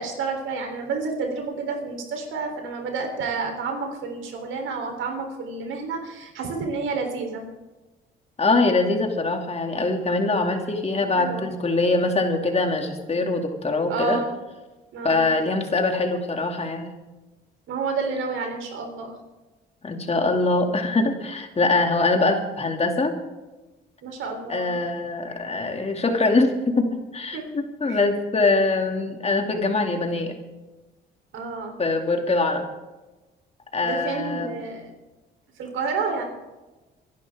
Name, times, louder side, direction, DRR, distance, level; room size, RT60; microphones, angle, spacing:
voice 1, 0.0-7.5 11.2-11.5 13.9-14.4 14.9-15.3 17.7-19.1 24.0-24.8 27.3-27.5 27.9-28.0 31.3-31.8 33.8-34.9 35.6-36.2, right 4 dB, 80° right, 3 dB, 3.7 m, -30 dB
voice 2, 8.4-14.2 15.0-16.9 19.8-23.1 24.5-30.4 31.8-32.7 33.7-34.6, left 3 dB, 30° left, 3 dB, 2.6 m, -23 dB
25.0 x 11.5 x 3.7 m, 1.1 s
cardioid pair, 90°, 20 cm